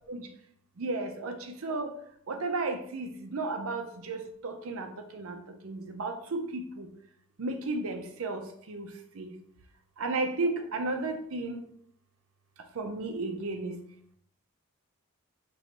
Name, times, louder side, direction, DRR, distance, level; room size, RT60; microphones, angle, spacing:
voice 1, 0.8-1.9 2.3-4.9 5.1-5.4 5.6-6.9 7.4-8.9 9.2-9.3 10.0-11.6 12.8-13.8, right 3 dB, 70° right, 5 dB, 0.6 m, -33 dB
4.5 x 3.1 x 2.8 m, 0.68 s
head